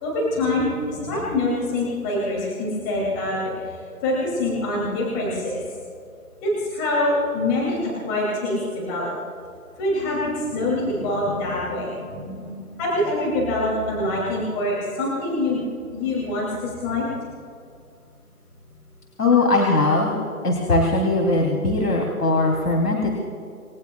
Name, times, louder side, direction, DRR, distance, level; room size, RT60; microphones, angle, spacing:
voice 1, 0.0-3.8 4.0-5.6 6.4-9.1 9.8-15.6 15.9-17.1, left 1 dB, 15° left, -5 dB, 2.8 m, -25 dB
voice 2, 19.2-20.2 20.4-23.1, left 2 dB, 80° left, 0 dB, 3.3 m, -20 dB
29.0 x 19.5 x 2.4 m, 2.4 s
figure-of-eight pair, 165°, 45 cm